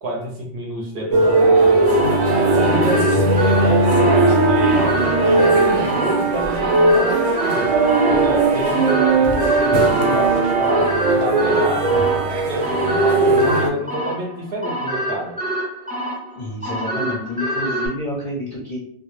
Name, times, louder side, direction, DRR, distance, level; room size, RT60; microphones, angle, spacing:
voice 1, 0.0-1.9 2.4-7.7 8.1-10.9 11.1-12.0 12.5-15.4, right 1 dB, 60° right, -1 dB, 0.8 m, -27 dB
sound 1, 1.1-13.7, right 2 dB, 90° right, 1.0 m, -17 dB
sound 2, 1.9-17.9, equal, 15° right, 0.3 m, -27 dB
voice 2, 16.3-18.8, left 1 dB, 45° left, -5 dB, 0.5 m, -28 dB
2.2 x 2.1 x 3.0 m, 0.66 s
omnidirectional pair, 1.2 m